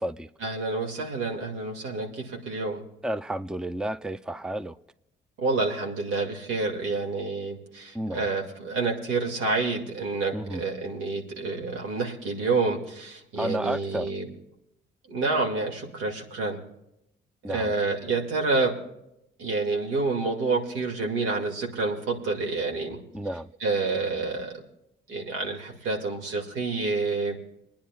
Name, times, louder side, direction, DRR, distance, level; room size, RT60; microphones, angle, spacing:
voice 1, 0.4-2.8 5.4-14.3 15.1-16.6 17.5-18.8 19.4-23.0 23.6-24.6 25.1-27.4, right 3 dB, 90° right, 2.2 m, -28 dB
voice 2, 3.0-4.8 7.9-8.3 10.3-10.6 13.4-14.1 17.4-17.7 23.1-23.5, right 1 dB, 5° right, 0.5 m, -31 dB
29.0 x 10.0 x 2.4 m
cardioid pair, 90°, 20 cm